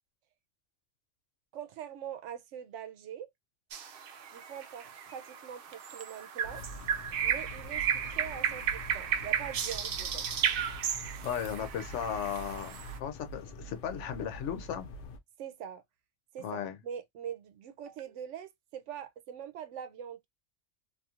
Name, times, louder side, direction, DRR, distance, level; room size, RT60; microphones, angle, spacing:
voice 1, 1.5-3.3 4.3-6.6 7.2-10.3 15.4-15.8 16.3-20.3, right 9 dB, 85° right, 0.9 m, -43 dB
sound 1, 3.7-13.0, right 8 dB, 60° right, 0.7 m, -34 dB
sound 2, 6.4-15.2, equal, 60° left, 0.7 m, -46 dB
voice 2, 11.2-12.8 13.0-14.9 16.4-16.8, left 8 dB, 90° left, 1.0 m, -35 dB
2.6 x 2.4 x 2.8 m
omnidirectional pair, 1.2 m